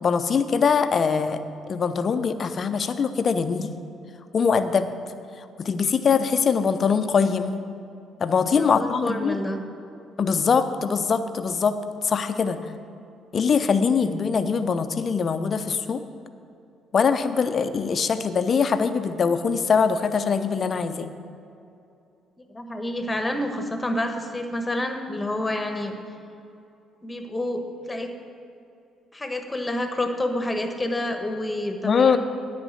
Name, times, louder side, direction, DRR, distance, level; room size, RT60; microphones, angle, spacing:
voice 1, 0.0-1.4 1.7-3.7 4.3-4.9 5.6-7.6 8.2-9.4 10.2-11.8 12.0-12.6 13.3-16.0 16.9-21.1 31.8-32.2, left 6 dB, 45° left, 11 dB, 0.6 m, -22 dB
voice 2, 8.5-9.6 22.5-25.9 27.0-28.1 29.1-32.2, left 1 dB, 20° left, 5 dB, 1.3 m, -28 dB
9.7 x 5.2 x 8.2 m, 2.6 s
hypercardioid pair, 50°, 0 cm